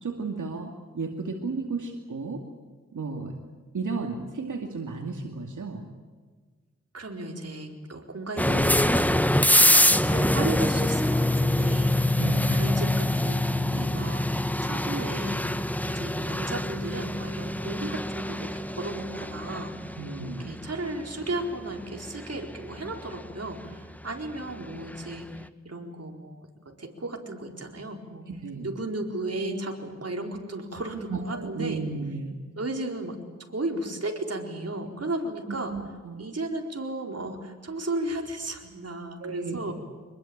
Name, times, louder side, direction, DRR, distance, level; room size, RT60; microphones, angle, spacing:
voice 1, 0.0-2.4 2.9-3.3 3.7-5.9 12.2-12.8 20.0-20.5 28.3-28.7 31.1-32.4 35.5-36.2 39.2-39.7, right 4 dB, 85° right, 2 dB, 2.4 m, -33 dB
voice 2, 6.9-14.3 14.6-26.5 26.8-28.3 28.6-31.8 32.6-33.2 33.5-35.8 36.2-39.7, right 2 dB, 55° right, 2 dB, 4.4 m, -35 dB
sound 1, 8.4-25.1, left 1 dB, 5° left, 1.0 m, -25 dB
25.0 x 21.0 x 8.8 m, 1.4 s
wide cardioid pair, 60°, 30 cm